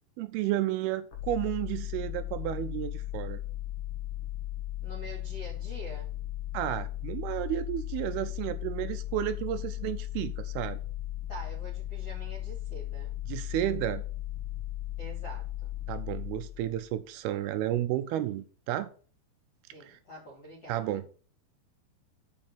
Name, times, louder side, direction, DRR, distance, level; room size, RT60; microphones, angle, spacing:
voice 1, 0.2-3.4 6.5-10.8 13.3-14.0 15.9-18.9 19.9-20.0 20.7-21.1, right 13 dB, 80° right, 2.3 m, -32 dB
sound 1, 1.1-16.9, left 14 dB, 55° left, 1.5 m, -36 dB
voice 2, 4.8-6.1 11.3-13.2 15.0-15.7 19.7-21.0, right 1 dB, 40° left, 3.1 m, -46 dB
7.5 x 5.7 x 7.0 m
omnidirectional pair, 5.0 m